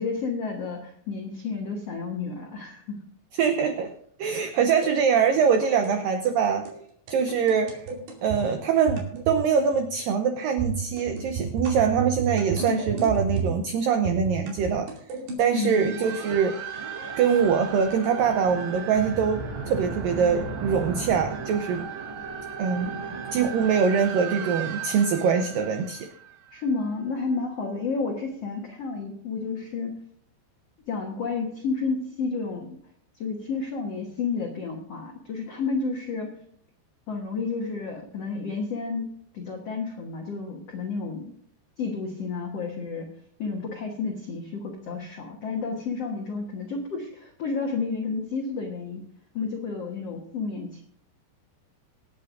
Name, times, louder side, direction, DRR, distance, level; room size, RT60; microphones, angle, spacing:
voice 1, 0.0-3.0 15.5-16.0 26.5-29.9 30.9-32.7 33.1-36.3 37.1-41.3 41.8-43.1 43.4-49.0 49.3-50.8, left 4 dB, 85° left, 1 dB, 1.4 m, -31 dB
voice 2, 3.4-3.9 4.2-6.6 7.1-7.9 8.2-14.9 15.4-16.6 17.2-21.9 22.6-22.9 23.3-26.1, right 6 dB, 85° right, 6 dB, 1.9 m, -23 dB
sound 1, 4.6-4.9 5.6-6.0 6.2-6.4 6.7-6.8 7.1-8.4 8.9-9.5 9.7-10.0 10.6-13.7 14.1-15.4, right 5 dB, 70° right, 4.7 m, -31 dB
sound 2, 15.6-26.8, right 6 dB, 50° right, 2.5 m, -35 dB
25.5 x 8.6 x 2.6 m, 0.64 s
omnidirectional pair, 5.1 m